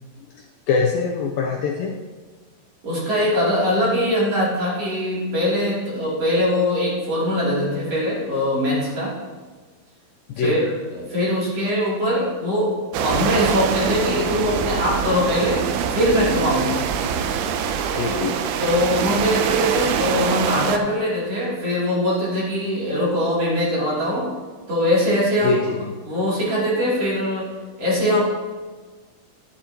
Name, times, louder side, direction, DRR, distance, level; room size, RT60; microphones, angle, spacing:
voice 1, 0.7-1.9 10.3-10.6 17.9-18.4 25.4-25.9, left 4 dB, 80° left, 1 dB, 2.1 m, -23 dB
voice 2, 2.8-9.2 10.4-16.8 18.6-24.3 24.7-25.6 26.0-27.5 27.8-28.2, left 1 dB, 40° right, -7 dB, 3.7 m, -22 dB
sound 1, 12.9-20.8, right 7 dB, 80° right, 2.6 m, -24 dB
11.5 x 11.5 x 2.9 m, 1.4 s
omnidirectional pair, 4.8 m